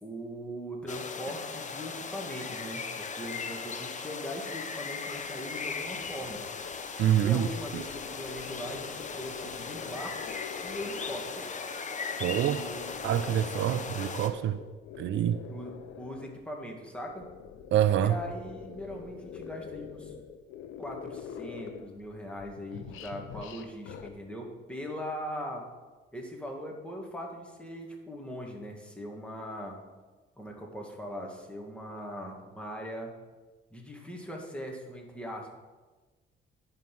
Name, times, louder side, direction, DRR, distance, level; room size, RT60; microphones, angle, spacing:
voice 1, 0.0-6.4 7.2-10.2 10.6-11.5 12.2-13.0 15.5-17.2 18.0-20.1 20.8-25.6 26.1-29.8 30.4-33.1 33.7-35.5, equal, 5° left, 2.1 m, -40 dB
sound 1, 0.9-14.3, left 5 dB, 40° left, 0.9 m, -38 dB
sound 2, 5.0-11.6 12.0-16.4 16.9-22.1 22.4-24.1, left 7 dB, 90° left, 0.7 m, -46 dB
voice 2, 7.0-7.5 12.2-12.6 13.0-14.6 15.0-15.4 17.7-18.2, right 11 dB, 70° right, 0.4 m, -26 dB
10.5 x 5.6 x 6.0 m
cardioid pair, 90°, 20 cm